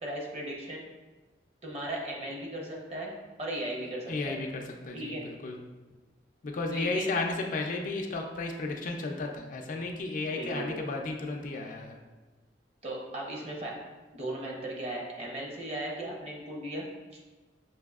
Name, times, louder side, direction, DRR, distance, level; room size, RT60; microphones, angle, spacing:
voice 1, 0.0-0.8 1.6-3.1 3.4-4.4 4.9-5.2 6.7-7.1 10.3-10.9 12.8-13.8 14.1-16.9, right 1 dB, 35° right, -2 dB, 0.8 m, -37 dB
voice 2, 4.1-5.6 6.4-12.0, left 3 dB, 50° left, 2 dB, 0.4 m, -33 dB
5.9 x 2.7 x 2.3 m, 1.2 s
head